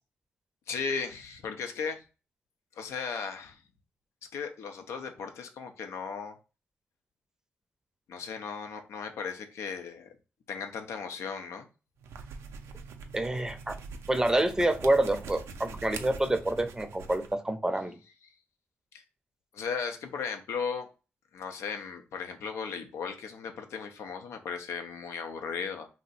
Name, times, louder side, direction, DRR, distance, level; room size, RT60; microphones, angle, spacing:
voice 1, 0.7-2.0 2.8-3.6 4.3-6.4 8.1-10.1 10.5-11.7 18.9-19.0 19.5-20.9 21.3-25.9, left 6 dB, 80° left, 6 dB, 0.5 m, -36 dB
sound 1, 12.0-17.3, right 4 dB, 80° right, 0.4 m, -44 dB
voice 2, 13.1-13.8 14.1-18.0, right 1 dB, 15° right, 8 dB, 0.5 m, -27 dB
2.6 x 2.0 x 3.9 m, 0.32 s
supercardioid pair, 55°, 5 cm